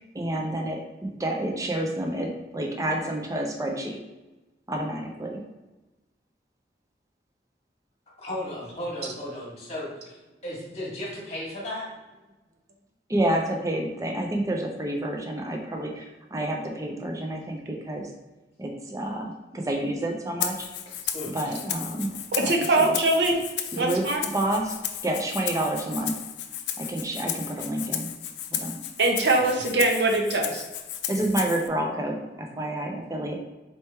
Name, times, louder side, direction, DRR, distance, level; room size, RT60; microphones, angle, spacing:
voice 1, 0.0-4.0 4.7-5.4 13.1-18.1 18.6-20.7 21.3-22.5 22.8-23.0 23.7-24.8 25.0-26.1 26.8-28.1 28.6-28.8 31.1-33.4, right 1 dB, 20° right, 2 dB, 0.5 m, -29 dB
voice 2, 8.2-10.2 10.4-11.9 20.9-21.3 29.4-29.5, left 1 dB, 40° left, -5 dB, 1.3 m, -35 dB
Rattle (instrument), 20.4-31.7, left 10 dB, 80° left, 0.4 m, -34 dB
voice 3, 22.3-23.4 23.8-24.2 29.0-30.6, right 2 dB, 70° right, 2 dB, 0.8 m, -22 dB
4.3 x 3.0 x 3.3 m, 1.1 s
head